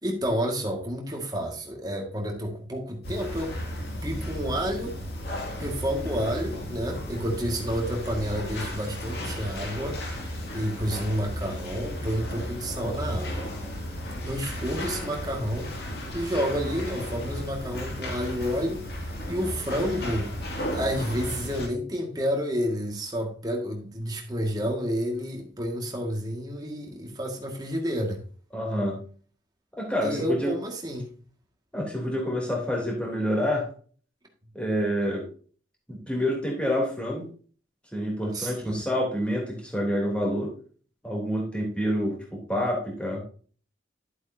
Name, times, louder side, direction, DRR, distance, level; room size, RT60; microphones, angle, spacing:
voice 1, 0.0-3.6 4.0-5.0 5.6-13.5 14.2-18.8 19.3-20.3 20.7-28.2 30.0-31.1 38.3-38.8, equal, 20° right, 1 dB, 1.9 m, -30 dB
sound 1, 3.0-21.7, left 1 dB, 55° left, 2.3 m, -34 dB
voice 2, 28.5-29.0 29.8-30.5 31.7-33.7 34.5-35.2 35.9-37.3 37.9-40.5 41.0-43.2, equal, 5° left, -1 dB, 3.1 m, -27 dB
11.0 x 7.9 x 2.7 m, 0.41 s
head